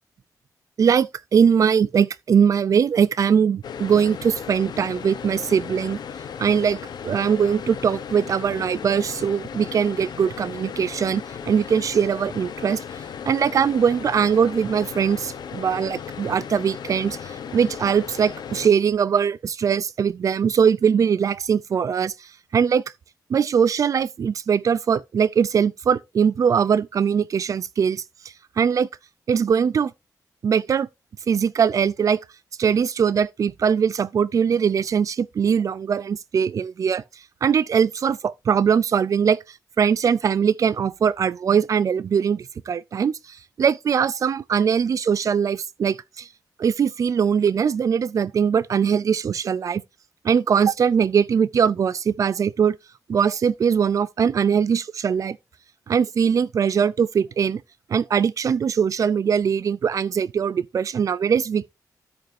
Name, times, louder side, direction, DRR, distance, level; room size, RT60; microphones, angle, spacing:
voice 1, 0.8-6.0 6.4-6.8 7.0-12.8 13.3-17.2 17.5-22.8 23.3-28.0 28.6-28.9 29.3-29.9 30.4-30.9 31.3-32.2 32.6-37.0 37.4-39.4 39.8-46.3 46.6-49.8 50.2-52.8 53.1-55.4 55.9-57.6 57.9-61.7, right 7 dB, 55° right, 0.4 m, -21 dB
sound 1, 3.6-18.7, left 7 dB, 85° left, 1.0 m, -36 dB
13.5 x 5.2 x 2.6 m
wide cardioid pair, 160°, 7 cm